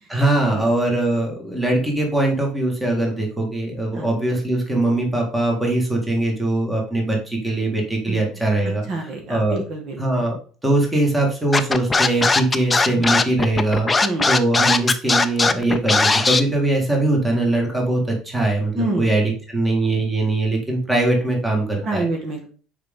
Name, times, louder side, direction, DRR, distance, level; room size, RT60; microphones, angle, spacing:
voice 1, 0.1-9.6 10.0-10.4 10.6-22.1, right 2 dB, 10° right, 0 dB, 1.9 m, -21 dB
voice 2, 8.9-10.3 14.0-14.3 18.8-19.1 21.8-22.5, right 2 dB, 45° right, 2 dB, 1.7 m, -27 dB
Scratching (performance technique), 11.5-16.4, left 3 dB, 15° left, 0.5 m, -18 dB
6.5 x 5.1 x 3.7 m, 0.40 s
cardioid pair, 135°, 0 cm